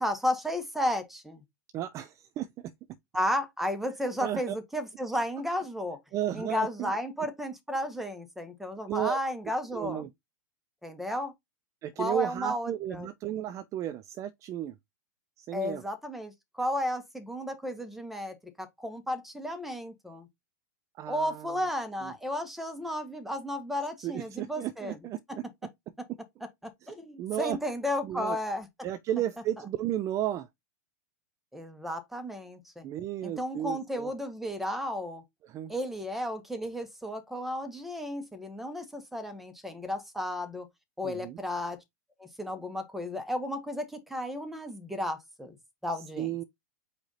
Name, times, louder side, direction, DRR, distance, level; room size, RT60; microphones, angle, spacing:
voice 1, 0.0-1.4 3.1-6.0 6.3-10.1 10.8-11.3 12.0-13.1 15.5-20.3 21.1-25.0 25.3-25.4 26.9-28.7 31.5-32.8 33.2-35.2 35.7-40.7 41.0-41.8 42.2-45.6 45.8-46.3, left 1 dB, ahead, 1.2 m, -33 dB
voice 2, 1.7-2.7 4.2-4.5 6.1-7.0 8.9-9.2 9.7-10.1 11.8-14.8 15.4-15.8 21.0-21.5 22.0-22.1 24.0-25.4 26.8-26.9 27.2-27.6 28.0-28.4 28.8-30.5 32.8-34.1 35.4-35.7 41.0-41.4 45.9-46.4, right 12 dB, 30° right, 0.4 m, -34 dB
4.8 x 2.7 x 4.0 m
hypercardioid pair, 105°, 10 cm